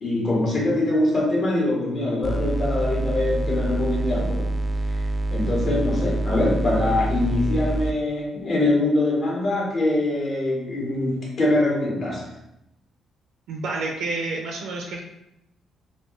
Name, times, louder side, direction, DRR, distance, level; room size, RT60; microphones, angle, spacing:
voice 1, 0.0-4.5 4.9-5.0 5.3-12.3, left 2 dB, 50° left, -4 dB, 1.5 m, -23 dB
sound 1, 2.2-8.0, right 2 dB, 20° right, 0.3 m, -26 dB
voice 2, 13.5-15.0, right 3 dB, 80° right, 1 dB, 0.6 m, -29 dB
3.2 x 2.7 x 3.1 m, 0.83 s
cardioid pair, 90°, 0 cm